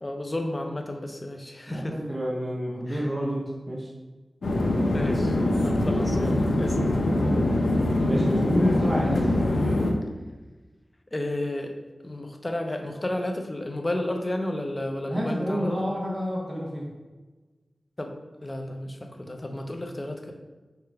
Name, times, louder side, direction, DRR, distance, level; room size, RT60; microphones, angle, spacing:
voice 1, 0.0-2.0 2.9-3.1 4.9-6.8 11.1-11.7 12.0-15.7 18.0-18.1 18.4-20.3, left 1 dB, 30° left, 4 dB, 0.6 m, -32 dB
voice 2, 1.7-3.9 8.0-9.3 15.0-16.9, equal, 40° right, -3 dB, 0.9 m, -29 dB
sound 1, 4.4-9.9, left 1 dB, 75° left, 0.5 m, -23 dB
4.8 x 2.3 x 4.6 m, 1.2 s
wide cardioid pair, 90°, 0 cm